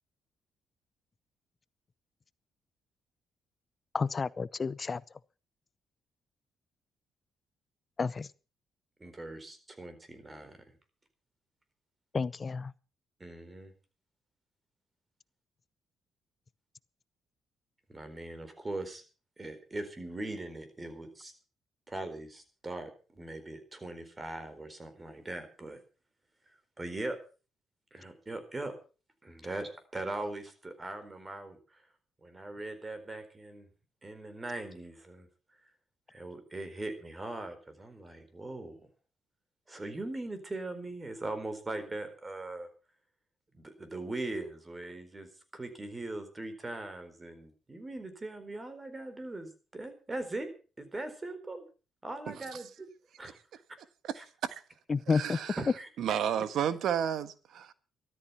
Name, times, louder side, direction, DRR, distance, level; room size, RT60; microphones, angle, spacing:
voice 1, 3.9-5.0 8.0-8.3 12.1-12.7 54.9-55.4, left 4 dB, 35° left, 0.7 m, -30 dB
voice 2, 9.0-10.6 13.2-13.7 17.9-19.0 19.4-21.3 21.9-25.8 26.8-27.2 27.9-28.7 29.2-31.8 32.2-33.7 34.0-35.3 36.1-38.9 39.7-42.7 43.5-45.3 45.5-50.5 50.8-51.7 52.0-52.9 53.2-53.4 54.2-54.3 55.6-55.9, right 2 dB, 20° right, 4.2 m, -40 dB
voice 3, 54.0-54.6 55.1-55.6 56.0-57.7, right 9 dB, 75° right, 1.4 m, -32 dB
13.5 x 13.5 x 5.7 m
cardioid pair, 90°, 0 cm